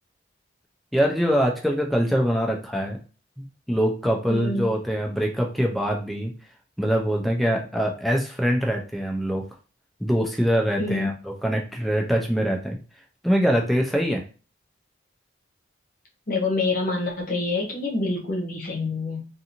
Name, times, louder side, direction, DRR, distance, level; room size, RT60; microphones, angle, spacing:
voice 1, 0.9-3.0 3.4-6.3 6.8-9.4 10.0-11.1 11.4-12.8 13.2-14.2, equal, ahead, 1 dB, 0.4 m, -23 dB
voice 2, 4.3-4.7 10.8-11.2 16.3-19.3, left 3 dB, 45° left, -1 dB, 0.8 m, -26 dB
2.5 x 2.5 x 2.8 m, 0.35 s
head